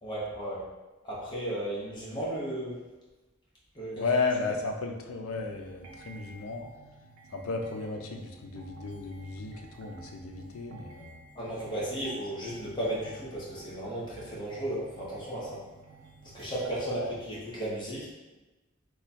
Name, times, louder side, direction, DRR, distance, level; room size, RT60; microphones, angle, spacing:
voice 1, 0.0-0.6 1.0-2.8 3.7-4.0 11.3-15.6 16.2-18.1, right 1 dB, 25° left, -7 dB, 1.0 m, -34 dB
voice 2, 4.0-6.6 7.3-11.2 16.9-17.2, left 4 dB, 85° left, 3 dB, 0.5 m, -34 dB
sound 1, 5.3-17.3, right 2 dB, 85° right, 0.5 m, -51 dB
3.0 x 2.3 x 4.0 m, 1.1 s
head